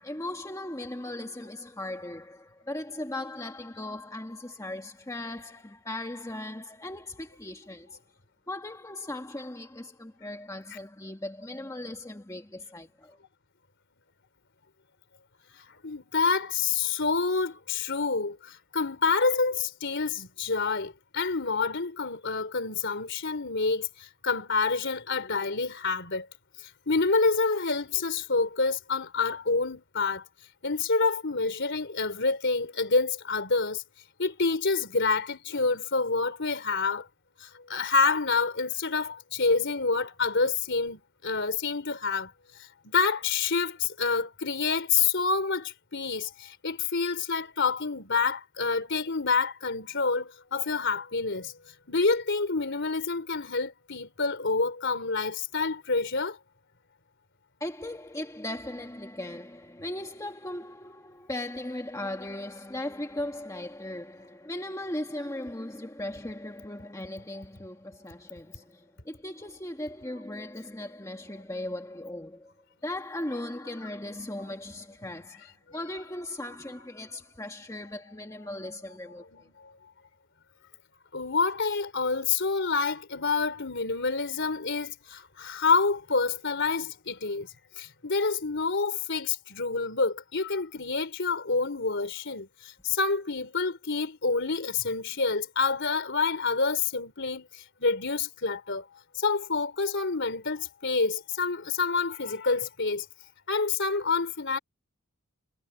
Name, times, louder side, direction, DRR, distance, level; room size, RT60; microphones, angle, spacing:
voice 1, 0.0-8.0 8.5-13.2 57.6-72.5 72.8-79.5, left 1 dB, 15° left, 1.6 m, -38 dB
voice 2, 15.5-26.3 26.9-30.2 30.6-33.8 34.2-37.1 37.4-51.5 51.9-56.4 79.3-79.7 81.1-87.5 87.8-103.1 103.5-104.6, left 4 dB, 55° left, 3.8 m, -28 dB
head